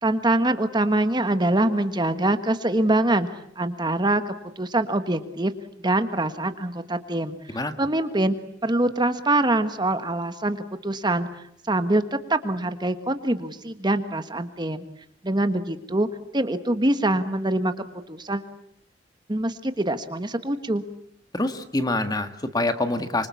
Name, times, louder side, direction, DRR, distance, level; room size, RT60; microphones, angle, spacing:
voice 1, 0.0-3.3 3.6-5.5 5.8-8.3 8.6-11.3 11.7-12.0 12.3-14.8 15.2-16.1 16.3-18.4 19.3-20.8, right 1 dB, 25° right, 9 dB, 1.4 m, -24 dB
voice 2, 21.3-23.3, left 2 dB, 20° left, 8 dB, 1.7 m, -25 dB
26.0 x 24.5 x 8.5 m, 0.71 s
head